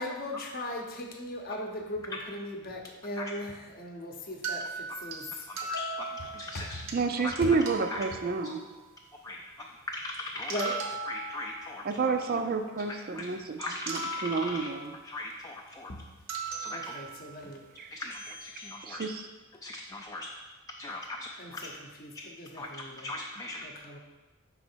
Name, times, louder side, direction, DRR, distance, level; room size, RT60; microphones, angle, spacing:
voice 1, 0.0-5.5 6.5-6.7 7.4-7.5 10.5-10.8 16.7-17.7 21.4-23.1 23.6-24.0, left 1 dB, 45° left, 2 dB, 0.8 m, -38 dB
sound 1, 4.4-6.9 7.4-7.5 7.7-8.8 10.1-10.2 10.5-12.0 13.2-13.3 13.6-15.0 16.3-17.4, right 3 dB, 65° right, 0.8 m, -38 dB
voice 2, 5.5-6.8 7.2-7.3 7.9-8.1 9.2-10.8 11.1-12.4 13.1-13.3 13.6-14.7 15.0-15.9 16.6-17.0 17.9-19.1 19.5-20.3 20.8-21.7 22.5-23.7, left 2 dB, 15° left, 0 dB, 0.3 m, -40 dB
voice 3, 6.9-8.6 11.8-13.6 13.9-14.9 17.8-17.9 18.8-19.2, right 4 dB, 45° right, 7 dB, 0.4 m, -29 dB
5.7 x 4.2 x 4.4 m, 1.2 s
head